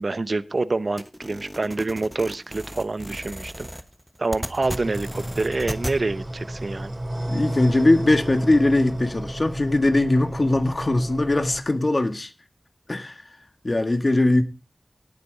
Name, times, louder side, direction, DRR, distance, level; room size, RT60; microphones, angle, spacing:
voice 1, 0.0-3.7 4.2-6.9, right 3 dB, 70° right, 15 dB, 0.7 m, -27 dB
sound 1, 1.0-6.0, equal, 5° right, 1.2 m, -35 dB
sound 2, 4.6-11.6, right 1 dB, 40° right, 3.4 m, -32 dB
voice 2, 7.2-12.3 12.9-13.2 13.6-14.4, left 2 dB, 50° left, 8 dB, 1.7 m, -20 dB
17.5 x 8.5 x 4.0 m, 0.29 s
wide cardioid pair, 65°, 0 cm